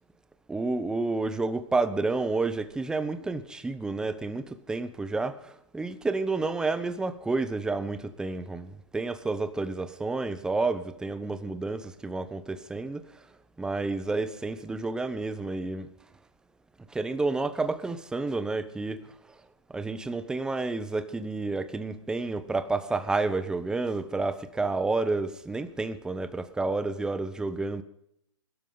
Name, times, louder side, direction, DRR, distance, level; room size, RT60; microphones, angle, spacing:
voice 1, 0.5-13.0 13.6-15.9 16.9-19.1 19.7-27.8, right 3 dB, 5° right, 0.7 m, -30 dB
21.0 x 12.5 x 3.9 m
hypercardioid pair, 150°, 17 cm